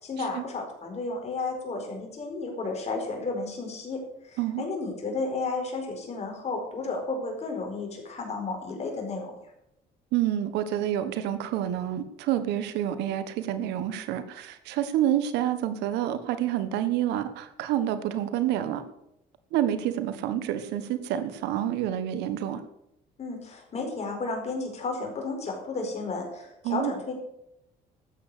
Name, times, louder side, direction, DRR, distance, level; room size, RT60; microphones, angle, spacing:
voice 1, 0.0-9.3 23.2-27.2, left 3 dB, 40° left, 2 dB, 4.7 m, -33 dB
voice 2, 10.1-18.8 19.5-22.6 26.6-26.9, right 11 dB, 90° right, 11 dB, 1.3 m, -28 dB
13.0 x 8.6 x 6.8 m, 0.83 s
cardioid pair, 110°, 17 cm